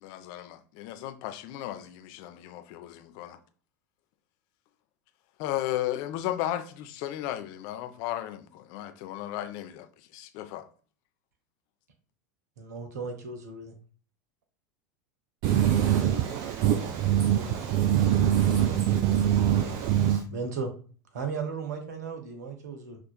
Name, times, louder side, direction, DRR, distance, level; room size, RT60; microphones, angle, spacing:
voice 1, 0.0-3.4 5.4-9.9 10.1-10.7, left 13 dB, 45° left, 0.4 m, -35 dB
voice 2, 12.6-13.7 20.3-20.7 21.1-23.0, right 5 dB, 65° right, 0.7 m, -35 dB
voice 3, 15.4-20.2, right 10 dB, 40° right, 0.4 m, -24 dB
5.8 x 2.5 x 2.2 m
figure-of-eight pair, 85°, 10 cm